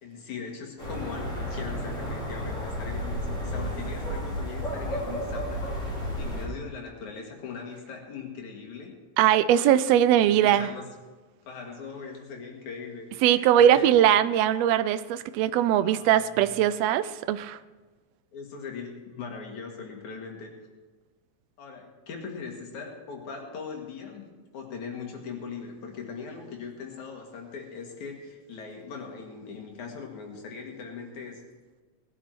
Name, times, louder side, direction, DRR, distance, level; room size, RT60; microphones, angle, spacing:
voice 1, 0.0-8.9 10.1-10.8 11.5-13.9 15.8-16.5 18.3-20.5 21.6-31.4, left 5 dB, 80° left, 1 dB, 3.5 m, -40 dB
sound 1, 0.8-6.5, equal, 30° left, 6.5 m, -32 dB
voice 2, 9.2-10.7 13.2-17.6, right 11 dB, 75° right, 13 dB, 1.6 m, -21 dB
19.0 x 10.0 x 4.5 m, 1.3 s
omnidirectional pair, 3.3 m